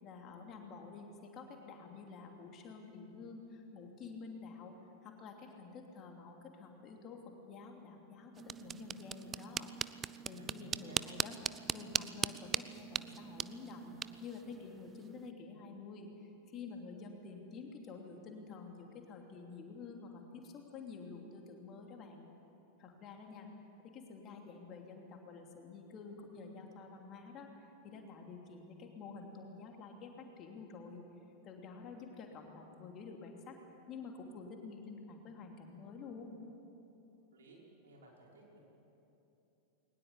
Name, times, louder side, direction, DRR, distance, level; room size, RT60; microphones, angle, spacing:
voice 1, 0.0-9.7 10.2-22.3 22.8-23.5 23.8-27.5 27.8-30.1 30.4-31.0 31.4-33.6 33.9-36.4, left 4 dB, 35° left, 2 dB, 2.9 m, -49 dB
sound 1, 8.3-15.3, right 7 dB, 20° right, 0.5 m, -40 dB
voice 2, 10.3-11.1 37.3-38.6, right 1 dB, 65° right, -3 dB, 5.6 m, -58 dB
21.0 x 20.0 x 8.4 m, 3.0 s
figure-of-eight pair, 90°, 0 cm